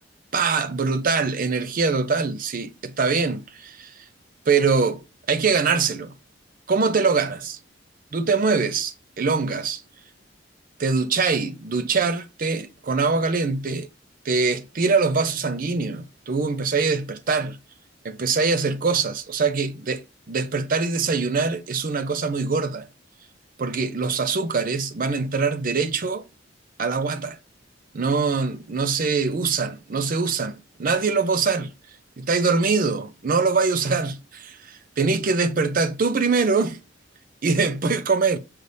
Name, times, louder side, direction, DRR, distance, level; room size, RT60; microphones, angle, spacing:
voice 1, 0.3-3.9 4.5-6.1 6.7-7.6 8.1-9.8 10.8-13.9 14.3-17.6 18.0-20.0 20.3-22.9 23.6-26.2 26.8-27.4 27.9-31.7 32.2-36.8 37.4-38.4, right 4 dB, 50° right, 0.5 m, -23 dB
5.7 x 3.3 x 2.6 m
head